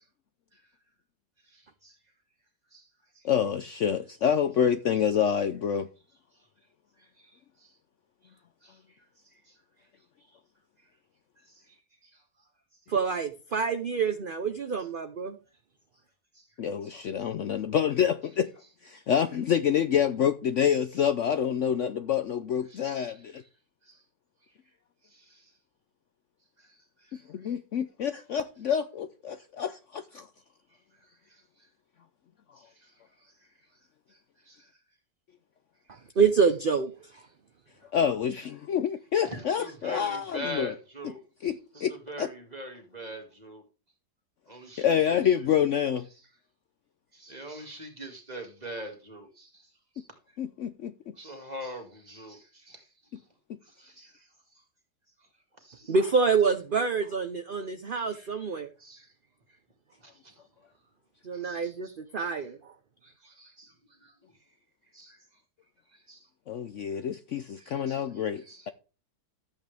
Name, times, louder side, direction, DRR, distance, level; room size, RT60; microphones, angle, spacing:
voice 1, 1.5-1.9 2.7-2.8 8.6-8.8 16.4-16.5 16.8-16.9 22.7-22.8 23.9-24.0 25.1-25.4 27.1-27.5 32.8-32.9 34.5-34.7 39.2-41.2 41.7-43.6 44.5-45.5 47.1-49.5 51.2-52.8 53.8-54.3 55.6-55.9 58.0-58.3 58.8-59.1 60.0-60.3 61.3-61.9 62.2-62.3 63.0-63.7 64.0-64.1 64.9-65.2 66.1-66.2 67.6-68.0 68.4-68.7, equal, 25° right, 2.4 m, -43 dB
voice 2, 3.2-5.9 16.6-18.5 18.8-23.4 27.3-30.3 37.9-40.7 41.4-42.3 44.8-46.1 50.4-50.9 66.5-68.7, left 8 dB, 60° left, 0.8 m, -27 dB
voice 3, 12.9-15.4 36.2-37.2 55.9-58.7 61.2-62.7, right 5 dB, 40° right, 0.8 m, -27 dB
13.5 x 8.6 x 3.5 m
omnidirectional pair, 1.7 m